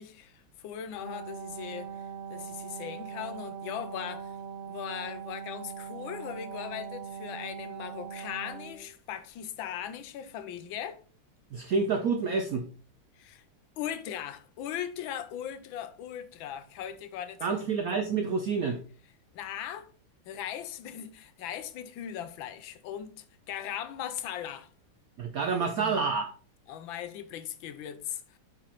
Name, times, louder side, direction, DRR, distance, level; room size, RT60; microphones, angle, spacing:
voice 1, 0.0-4.4 4.7-11.0 13.2-13.4 13.8-17.7 19.3-19.9 20.3-24.7 25.6-26.0 26.7-28.4, left 10 dB, 75° left, 1.3 m, -39 dB
Wind instrument woodwind instrument, 0.9-8.9, right 7 dB, 35° right, 1.9 m, -41 dB
voice 2, 11.5-12.6 17.4-18.8 25.2-26.3, right 5 dB, 75° right, 0.8 m, -28 dB
8.5 x 5.3 x 2.9 m
omnidirectional pair, 2.3 m